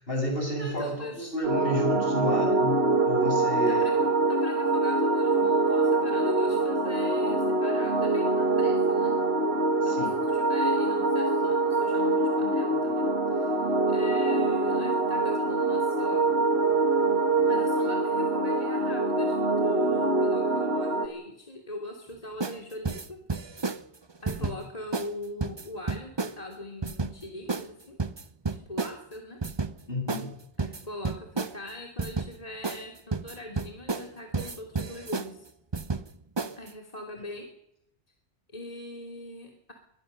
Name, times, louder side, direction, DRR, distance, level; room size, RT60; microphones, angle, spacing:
voice 1, 0.1-3.8 9.8-10.1 24.4-24.5 29.9-30.3, equal, 55° left, 2 dB, 7.7 m, -31 dB
voice 2, 0.6-1.2 3.6-9.2 9.8-16.2 17.5-23.2 24.2-28.0 28.5-29.4 30.6-35.5 36.6-37.5 38.5-39.7, left 1 dB, 35° left, 2 dB, 3.0 m, -41 dB
sound 1, 1.4-21.1, right 2 dB, 65° right, 2.8 m, -24 dB
sound 2, 22.4-22.6 22.9-23.8 24.3-24.6 24.9-25.1 25.4-26.3 26.8-27.1 27.5-27.7 28.0-29.0 29.4-29.8 30.1-30.3 30.6-31.6 32.0-32.3 32.6-32.9 33.1-34.1 34.3-35.3 35.7-36.1 36.4-36.7, right 4 dB, 25° right, 0.8 m, -31 dB
23.5 x 19.5 x 6.6 m, 0.76 s
omnidirectional pair, 1.2 m